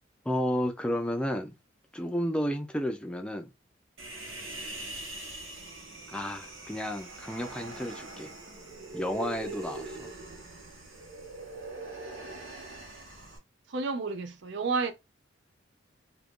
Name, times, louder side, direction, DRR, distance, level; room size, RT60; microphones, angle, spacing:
voice 1, 0.3-1.5 1.9-3.5 6.1-8.3 8.9-10.1, equal, 5° left, 0.4 m, -32 dB
Human voice, 4.0-13.4, right 2 dB, 85° right, 1.1 m, -42 dB
voice 2, 13.7-14.9, right 4 dB, 65° right, 0.5 m, -30 dB
2.8 x 2.6 x 3.5 m
head